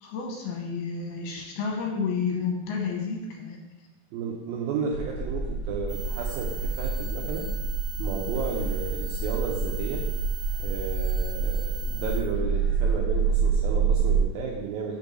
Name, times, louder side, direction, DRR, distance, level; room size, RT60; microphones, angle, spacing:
voice 1, 0.0-3.6, left 5 dB, 70° left, 0 dB, 2.6 m, -30 dB
voice 2, 4.1-7.5 8.0-10.0 10.6-15.0, right 5 dB, 80° right, -1 dB, 2.1 m, -33 dB
sound 1, 4.9-14.2, right 5 dB, 40° right, 2.3 m, -27 dB
sound 2, 5.9-12.2, right 8 dB, 45° left, 1.3 m, -41 dB
5.8 x 5.3 x 6.1 m, 1.1 s
omnidirectional pair, 5.1 m